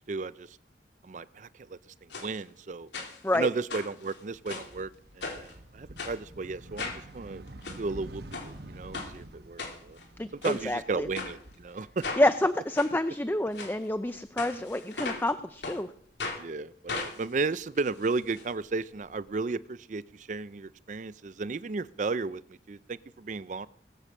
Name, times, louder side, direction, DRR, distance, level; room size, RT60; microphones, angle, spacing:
voice 1, 0.1-0.6 1.0-1.8 2.2-2.9 3.3-4.9 5.1-7.4 7.8-10.0 10.3-12.1 16.4-23.7, right 4 dB, 45° right, 17 dB, 0.4 m, -34 dB
sound 1, 2.1-2.3 2.9-3.4 3.7-4.7 5.2-5.5 6.0-6.2 6.8-7.0 7.5-7.8 8.3-8.5 8.9-9.1 9.6-10.0 10.4-10.6 11.1-11.3 12.0-12.3 12.7-12.9 13.5-13.7 14.4-15.3 15.6-15.8 16.2-16.4 16.9-18.4 18.7-18.8 19.0-19.1, left 3 dB, 80° left, 3.2 m, -37 dB
sound 2, 4.4-12.5 12.8-14.0, right 1 dB, 60° right, 1.1 m, -48 dB
voice 2, 10.2-11.1 12.2-15.9, left 1 dB, 10° left, 11 dB, 0.5 m, -28 dB
19.5 x 6.8 x 7.3 m, 0.64 s
head